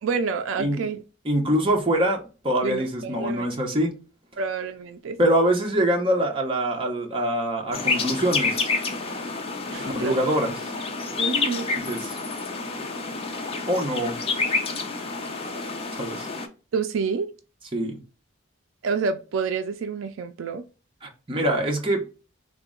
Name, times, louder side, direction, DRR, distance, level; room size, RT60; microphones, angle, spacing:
voice 1, 0.0-1.0 2.6-3.5 4.4-5.2 9.7-10.2 11.2-11.7 16.7-17.3 18.8-20.6, right 5 dB, 70° right, 0.3 m, -28 dB
voice 2, 1.2-3.9 5.2-8.7 9.7-10.7 11.9-12.2 13.7-14.2 15.9-16.3 17.7-18.0 21.0-22.0, right 1 dB, 25° right, 0.7 m, -24 dB
sound 1, 7.7-16.5, left 4 dB, 30° left, 0.5 m, -28 dB
3.6 x 2.1 x 3.6 m
head